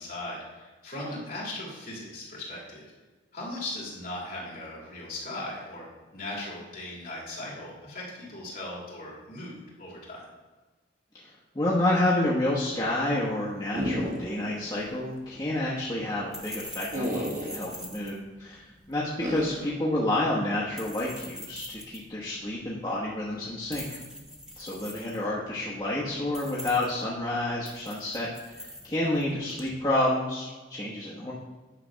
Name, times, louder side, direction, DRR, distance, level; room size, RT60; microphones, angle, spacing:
voice 1, 0.0-2.9 3.3-5.9 6.1-10.3, left 1 dB, 45° left, -5 dB, 2.7 m, -38 dB
voice 2, 11.1-24.0 24.6-31.3, left 1 dB, 20° left, -7 dB, 1.1 m, -29 dB
sound 1, 13.7-14.6 14.9-15.0 16.9-17.7 19.2-19.7, equal, 45° right, 1.2 m, -31 dB
sound 2, 14.7-29.8, equal, 5° right, 0.8 m, -45 dB
10.0 x 3.3 x 6.2 m, 1.3 s
head